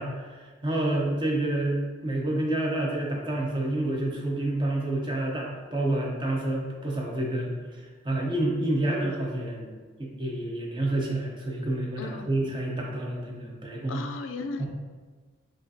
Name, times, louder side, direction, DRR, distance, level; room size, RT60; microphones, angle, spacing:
voice 1, 0.0-9.7 10.0-14.0 14.6-14.7, right 1 dB, 25° right, -2 dB, 0.6 m, -29 dB
voice 2, 12.0-12.3 13.9-14.7, left 3 dB, 85° left, 7 dB, 0.3 m, -35 dB
4.9 x 2.4 x 2.6 m, 1.4 s
head